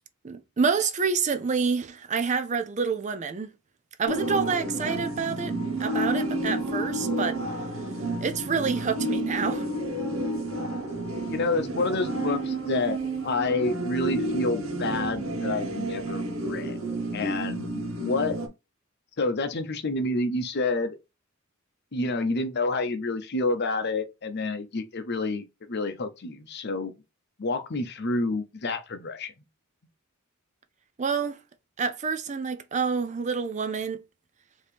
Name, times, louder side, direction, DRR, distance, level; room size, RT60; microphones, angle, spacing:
voice 1, 0.2-3.5 4.0-5.5 5.8-7.4 8.2-9.7 31.0-31.4 31.8-34.0, right 5 dB, 35° right, 0.5 m, -28 dB
sound 1, 4.1-18.5, right 1 dB, 75° right, 1.2 m, -30 dB
voice 2, 11.3-13.0 13.2-16.8 17.1-18.4 19.2-21.0 21.9-26.9 27.4-29.3, left 3 dB, 50° left, 0.7 m, -28 dB
4.7 x 2.9 x 3.4 m
head